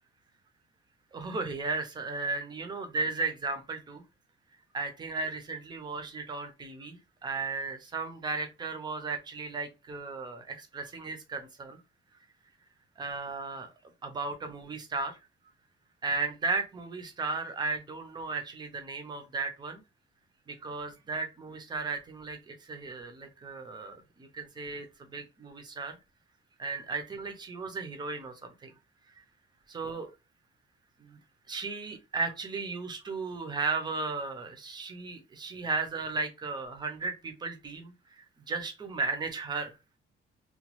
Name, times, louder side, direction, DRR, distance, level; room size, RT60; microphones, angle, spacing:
voice 1, 1.1-4.0 4.7-11.8 13.0-13.7 14.0-15.2 16.0-19.8 20.5-26.0 26.6-28.7 29.7-30.1 31.0-31.2 31.5-39.8, right 4 dB, 20° right, 6 dB, 0.5 m, -35 dB
2.9 x 2.2 x 2.9 m, 0.26 s
cardioid pair, 180°, 20 cm